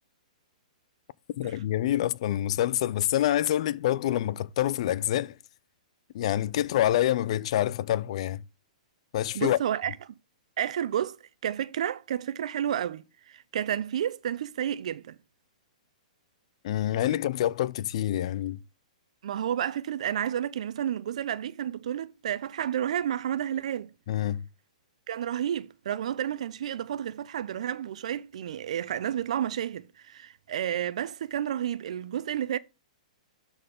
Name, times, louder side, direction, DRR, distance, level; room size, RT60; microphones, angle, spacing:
voice 1, 1.4-5.3 6.1-8.4 9.1-9.6 16.6-18.6 24.1-24.4, left 12 dB, 55° left, 0.5 m, -26 dB
voice 2, 9.3-10.1 10.6-11.2 11.4-15.2 19.2-23.9 25.1-32.6, right 10 dB, 65° right, 0.8 m, -31 dB
12.5 x 4.4 x 3.6 m
hypercardioid pair, 120°, 4 cm